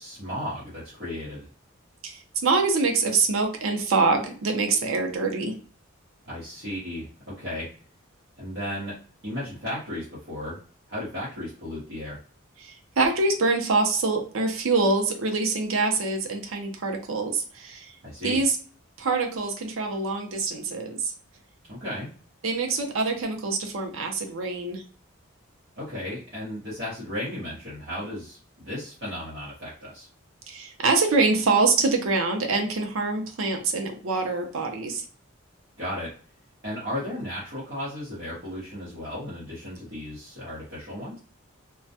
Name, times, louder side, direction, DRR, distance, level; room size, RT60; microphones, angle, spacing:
voice 1, 0.0-1.5 6.2-7.7 8.4-8.9 9.2-10.6 10.9-12.2 18.0-18.4 21.7-22.1 25.8-30.1 35.8-36.1 36.6-41.2, left 1 dB, 50° right, -9 dB, 0.9 m, -35 dB
voice 2, 2.0-5.5 12.6-17.9 18.2-18.6 19.0-21.1 22.4-24.8 30.5-35.0, right 3 dB, 75° right, 3 dB, 0.6 m, -25 dB
2.2 x 2.1 x 2.7 m, 0.40 s
head